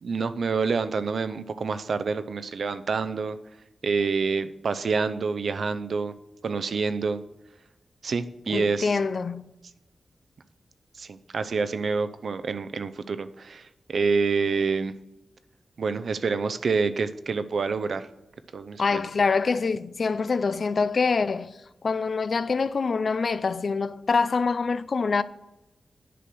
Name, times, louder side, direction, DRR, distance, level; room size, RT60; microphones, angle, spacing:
voice 1, 0.0-3.4 3.8-6.1 6.4-7.2 8.0-9.0 11.0-14.9 15.8-18.1 18.5-19.0, right 4 dB, 65° right, 0.6 m, -27 dB
voice 2, 8.5-9.5 18.8-21.5 21.8-25.2, left 4 dB, 50° left, 0.5 m, -25 dB
10.0 x 6.2 x 7.7 m
wide cardioid pair, 165°, 0 cm